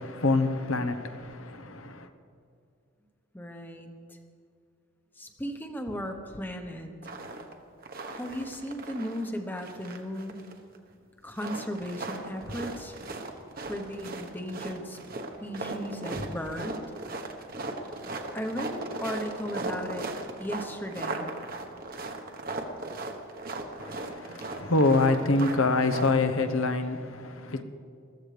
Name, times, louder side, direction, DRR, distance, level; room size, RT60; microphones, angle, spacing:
voice 1, 0.0-2.1 23.8-27.6, left 3 dB, 75° left, 1.0 m, -26 dB
voice 2, 3.3-4.2 5.1-6.9 8.1-10.4 11.2-13.0 13.6-15.0 15.4-17.0 18.3-20.1 20.4-21.3, equal, 10° left, 1.0 m, -36 dB
sound 1, 7.0-7.5 7.8-9.3 9.6-10.8 11.3-26.1, right 2 dB, 45° right, 1.2 m, -37 dB
21.5 x 14.5 x 3.4 m
head